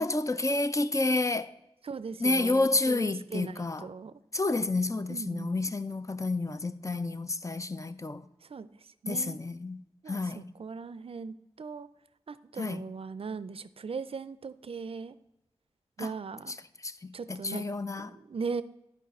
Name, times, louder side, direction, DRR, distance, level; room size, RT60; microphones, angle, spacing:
voice 1, 0.0-1.5 2.2-3.9 4.3-8.3 9.1-9.8 10.1-10.5 12.6-12.8 16.0-16.1 16.8-18.2, left 2 dB, 30° left, 0.5 m, -30 dB
voice 2, 1.8-4.1 5.1-5.6 8.4-8.7 9.0-9.4 10.0-11.9 12.3-15.2 16.0-16.6 17.1-17.7 18.0-18.6, right 5 dB, 60° right, 0.4 m, -39 dB
10.0 x 4.7 x 4.2 m
cardioid pair, 45°, 11 cm